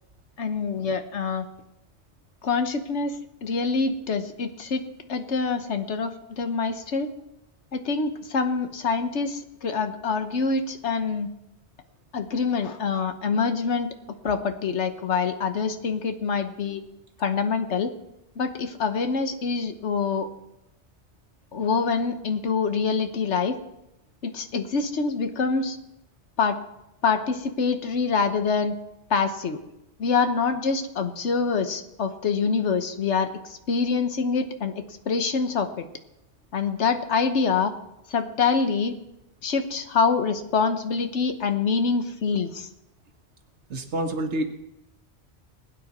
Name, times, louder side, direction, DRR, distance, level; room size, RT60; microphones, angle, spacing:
voice 1, 0.4-1.4 2.4-7.1 7.7-11.3 12.1-13.9 14.2-16.8 17.2-17.9 18.4-20.3 21.5-23.6 24.2-25.8 26.4-26.6 27.0-28.8 29.1-29.6 30.0-35.9 36.5-37.7 38.1-38.9 39.4-42.7, left 5 dB, 85° left, 8 dB, 1.3 m, -25 dB
voice 2, 43.7-44.5, right 1 dB, 90° right, 5 dB, 1.7 m, -27 dB
21.0 x 9.1 x 4.2 m, 0.89 s
omnidirectional pair, 1.2 m